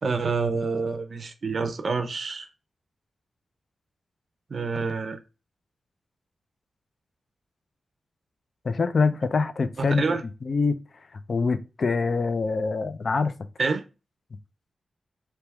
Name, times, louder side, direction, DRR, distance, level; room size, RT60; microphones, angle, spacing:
voice 1, 0.0-2.5 4.5-5.2 9.8-10.2 13.6-13.8, right 4 dB, 55° right, 0.5 m, -27 dB
voice 2, 8.6-10.8 11.1-13.3, left 4 dB, 55° left, 0.5 m, -25 dB
3.5 x 2.9 x 4.5 m
wide cardioid pair, 95°, 0 cm